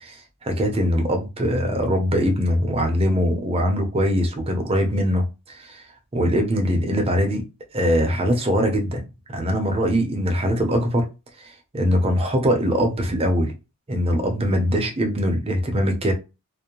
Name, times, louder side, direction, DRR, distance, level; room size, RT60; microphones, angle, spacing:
voice 1, 0.0-5.8 6.1-7.5 7.7-9.0 9.3-11.1 11.4-13.5 13.9-16.1, equal, 25° right, 0.6 m, -22 dB
2.5 x 2.0 x 2.9 m
head